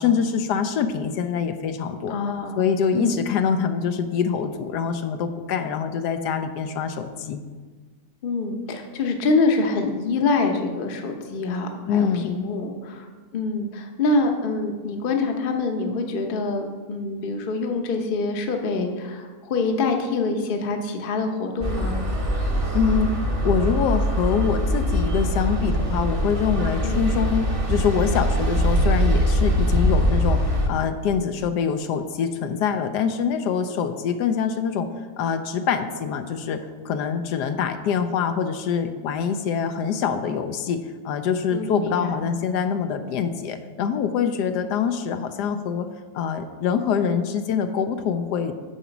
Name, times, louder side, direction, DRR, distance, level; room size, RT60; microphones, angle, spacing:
voice 1, 0.0-2.1 2.6-7.4 11.9-12.3 22.7-23.1 23.4-30.4 30.7-34.9 35.2-45.9 46.1-48.5, left 7 dB, 80° left, 8 dB, 1.2 m, -24 dB
voice 2, 2.1-2.6 2.9-3.2 8.2-13.1 13.3-22.1 26.8-27.0 41.5-42.2, left 3 dB, 45° left, 4 dB, 0.8 m, -25 dB
sound 1, 21.6-30.7, equal, 25° right, 0.8 m, -22 dB
7.1 x 4.9 x 7.0 m, 1.4 s
omnidirectional pair, 1.8 m